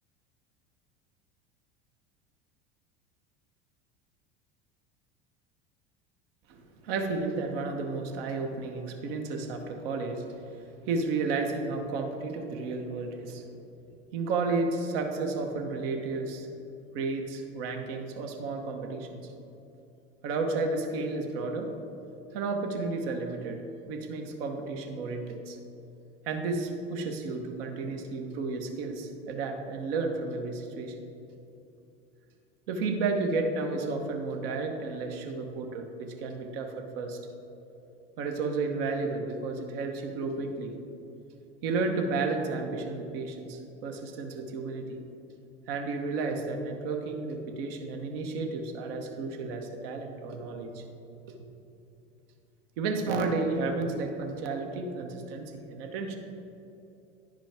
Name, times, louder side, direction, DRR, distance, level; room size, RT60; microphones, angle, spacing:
voice 1, 6.5-10.4 10.8-13.4 14.1-16.5 16.9-19.2 20.2-21.7 22.3-23.6 23.9-25.6 26.2-30.9 32.7-37.2 38.2-40.8 41.6-45.0 45.7-50.8 52.8-56.2, right 3 dB, 70° right, 4 dB, 1.0 m, -32 dB
10.5 x 5.1 x 3.4 m, 2.8 s
hypercardioid pair, 80°, 31 cm